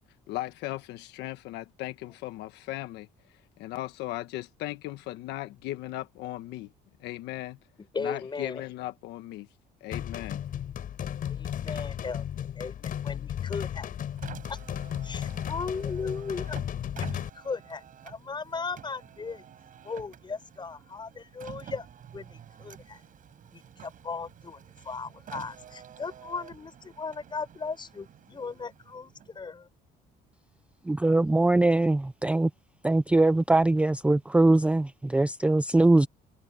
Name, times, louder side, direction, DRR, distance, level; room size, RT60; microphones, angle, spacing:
voice 1, 0.3-3.1 3.6-6.7 7.0-7.6 8.0-9.5 9.8-10.4, left 16 dB, 90° left, 1.3 m, -37 dB
voice 2, 7.9-8.6 11.3-13.9 14.5-14.6 15.0-16.6 16.9-19.4 19.8-21.9 22.1-23.0 23.5-29.7, left 4 dB, 25° left, 6.0 m, -37 dB
sound 1, 9.9-17.3, left 10 dB, 55° left, 4.6 m, -34 dB
Car, 14.1-29.5, right 9 dB, 50° right, 7.5 m, -49 dB
voice 3, 30.8-32.5 32.8-36.1, right 2 dB, 5° right, 0.4 m, -22 dB
cardioid pair, 110°, 17 cm